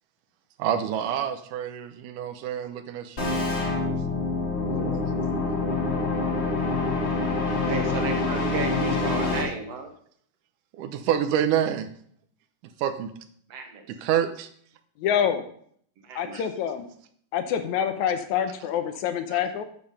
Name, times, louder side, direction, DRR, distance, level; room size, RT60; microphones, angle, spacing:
voice 1, 0.6-3.4 10.8-11.9 12.8-13.1 13.9-14.5 16.3-16.4 19.3-19.4, right 9 dB, 80° right, 8 dB, 2.4 m, -27 dB
sound 1, 3.2-9.4, left 3 dB, 30° left, 1.3 m, -26 dB
voice 2, 4.7-5.0 7.7-9.9 13.5-13.9 16.0-16.4, right 3 dB, 60° right, 4 dB, 2.0 m, -32 dB
voice 3, 15.0-15.4 16.2-16.9 17.3-19.6, left 8 dB, 75° left, 8 dB, 2.0 m, -26 dB
9.6 x 6.9 x 5.4 m, 0.62 s
omnidirectional pair, 3.6 m